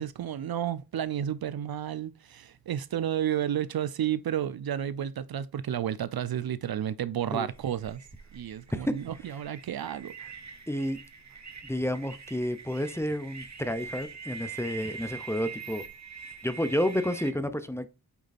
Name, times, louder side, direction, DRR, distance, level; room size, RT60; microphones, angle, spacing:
voice 1, 0.0-8.0 8.3-10.1, right 10 dB, 70° right, 0.6 m, -31 dB
sound 1, 7.5-17.3, right 5 dB, 45° right, 1.3 m, -44 dB
voice 2, 10.7-11.0 11.6-15.8 16.4-17.9, equal, 5° left, 0.8 m, -30 dB
8.4 x 3.8 x 4.2 m
cardioid pair, 75°, 38 cm